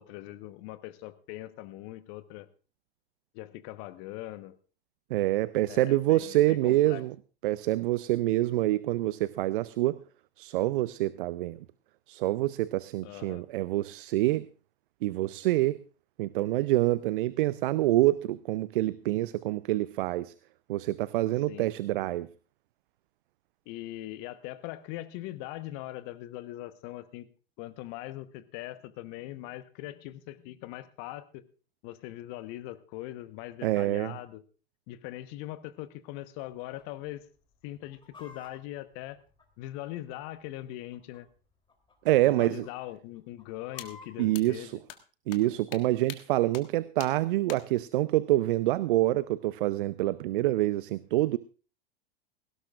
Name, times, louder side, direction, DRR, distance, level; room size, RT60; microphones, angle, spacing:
voice 1, 0.0-2.5 3.3-4.6 5.7-7.0 13.0-13.4 21.5-21.7 23.7-27.3 27.6-31.4 31.8-34.4 34.9-37.2 37.6-39.2 39.6-41.3 42.2-44.7, left 15 dB, 45° left, 12 dB, 1.2 m, -41 dB
voice 2, 5.1-7.1 7.4-10.0 10.4-11.6 12.1-14.5 15.0-15.8 16.2-20.3 20.7-22.3 33.6-34.2 42.0-42.7 44.2-44.8 45.3-51.4, right 16 dB, 60° right, 18 dB, 0.6 m, -26 dB
Chicken rooster, 36.4-36.8 37.1-37.2 37.6-39.9 40.6-41.4 41.7-41.9 42.2-42.7 43.2-44.3, left 4 dB, 15° left, 3.3 m, -52 dB
sound 1, 43.8-43.9 44.3-44.4 44.9-45.0 45.3-45.4 45.7-45.8 46.1-46.2 46.5-46.6 47.0-47.1 47.5-47.6, left 11 dB, 65° left, 1.7 m, -41 dB
18.0 x 16.5 x 2.5 m, 0.35 s
hypercardioid pair, 95°, 29 cm